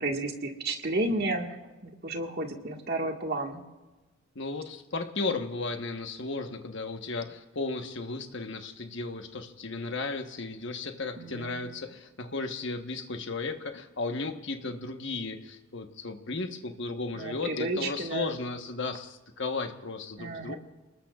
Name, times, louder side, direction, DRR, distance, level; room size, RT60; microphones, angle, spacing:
voice 1, 0.0-1.5 1.8-3.6 11.2-11.6 17.2-18.3 20.2-20.6, right 2 dB, 45° right, 2 dB, 1.7 m, -32 dB
voice 2, 4.3-20.6, left 3 dB, 55° left, 5 dB, 1.2 m, -35 dB
29.5 x 20.0 x 2.4 m, 1.1 s
head